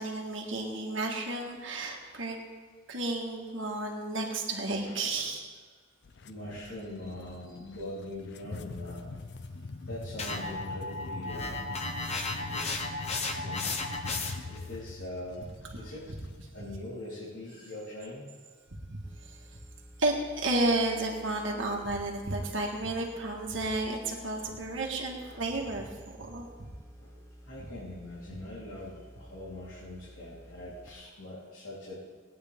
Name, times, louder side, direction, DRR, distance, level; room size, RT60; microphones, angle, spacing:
voice 1, 0.0-2.4 2.9-5.4 18.9-19.4 20.0-26.5, right 2 dB, 70° right, -1 dB, 1.8 m, -32 dB
voice 2, 1.9-2.3 4.8-5.3 6.2-9.1 9.8-11.7 12.4-12.8 13.2-14.1 14.4-16.1 16.5-18.3 24.4-24.5 25.2-25.4 27.0-32.0, left 1 dB, 80° left, -9 dB, 3.8 m, -43 dB
sound 1, 6.0-16.5, left 3 dB, 55° left, 0.5 m, -43 dB
sound 2, 10.2-14.6, left 3 dB, 35° left, 1.0 m, -34 dB
sound 3, 19.0-30.9, equal, 15° left, 0.8 m, -52 dB
19.5 x 9.4 x 3.7 m, 1.5 s
head